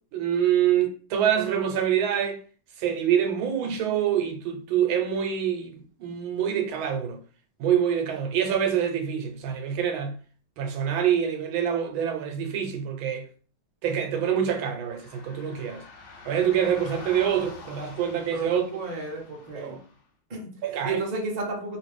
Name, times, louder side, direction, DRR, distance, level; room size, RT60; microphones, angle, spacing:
voice 1, 0.1-2.4 2.8-7.2 7.6-10.1 10.6-13.3 13.8-15.8 16.2-18.6 19.5-19.8 20.6-21.0, right 9 dB, 85° right, 1.5 m, -26 dB
sound 1, 14.8-20.0, left 4 dB, 70° left, 1.3 m, -46 dB
voice 2, 18.3-19.8 20.3-20.5 20.8-21.8, right 3 dB, 35° right, 0.7 m, -32 dB
3.1 x 3.0 x 3.1 m
omnidirectional pair, 2.2 m